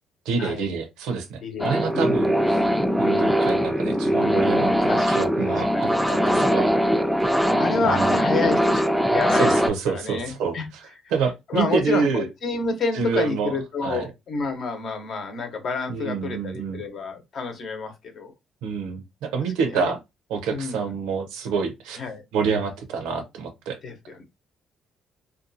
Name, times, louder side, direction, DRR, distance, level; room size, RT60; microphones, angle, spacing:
voice 1, 0.3-2.7 3.0-6.8 7.8-8.1 9.3-12.3 12.9-13.5 13.8-14.1 15.9-16.8 18.6-20.0 20.3-22.0 22.3-23.8, right 5 dB, 85° right, 0.6 m, -27 dB
voice 2, 1.4-2.3 4.9-6.5 7.4-10.7 11.5-18.3 19.6-19.9 20.5-20.8 22.0-22.2 23.8-24.2, left 4 dB, 60° left, 0.8 m, -29 dB
sound 1, 1.6-9.7, equal, 5° right, 0.3 m, -21 dB
2.5 x 2.3 x 2.6 m
supercardioid pair, 75°, 0 cm